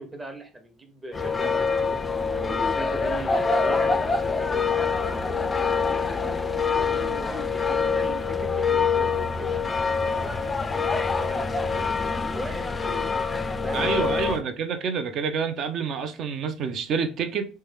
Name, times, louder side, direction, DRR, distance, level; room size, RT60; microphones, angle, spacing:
voice 1, 0.0-1.5 2.2-6.3 6.8-10.7 11.1-14.4, right 1 dB, 20° right, 0.9 m, -40 dB
sound 1, 1.1-14.4, left 5 dB, 25° left, 0.3 m, -25 dB
voice 2, 13.7-17.5, right 6 dB, 50° right, 0.5 m, -28 dB
3.2 x 2.1 x 3.4 m
hypercardioid pair, 60°, 0 cm